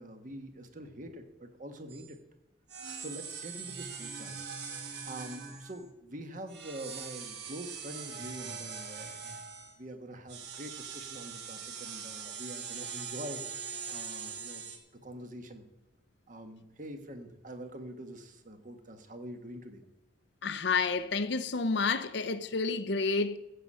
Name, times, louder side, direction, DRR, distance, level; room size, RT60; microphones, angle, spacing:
voice 1, 0.0-2.2 3.0-4.4 5.0-9.3 9.8-13.4 13.9-14.6 15.0-15.7 16.3-19.8, right 1 dB, 45° right, 1.5 m, -45 dB
sound 1, 1.9-2.1 2.7-5.9 6.5-9.8 10.3-14.8, right 6 dB, 60° right, 1.9 m, -42 dB
voice 2, 20.4-23.4, left 4 dB, 65° left, 0.7 m, -30 dB
15.0 x 7.6 x 5.6 m
head